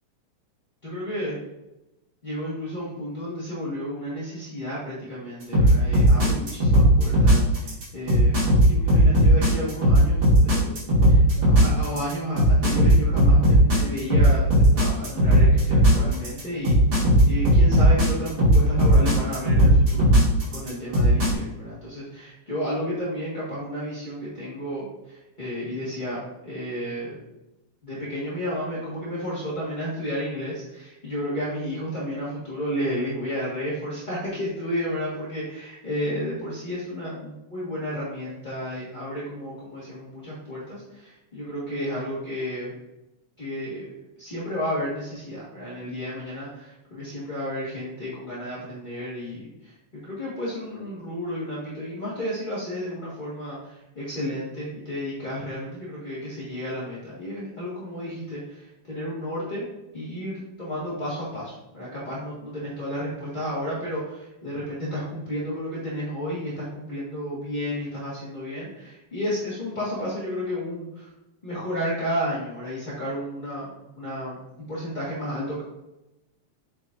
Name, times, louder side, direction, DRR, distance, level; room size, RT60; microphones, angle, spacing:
voice 1, 0.8-1.4 2.2-8.4 8.7-10.7 11.1-16.8 17.2-20.1 20.5-27.2 27.8-42.7 43.4-49.7 50.0-59.7 59.9-71.1 71.4-75.6, equal, 25° left, -9 dB, 1.1 m, -32 dB
sound 1, 5.5-21.3, equal, 40° right, 3.1 m, -17 dB
8.0 x 4.9 x 2.6 m, 0.92 s
omnidirectional pair, 3.3 m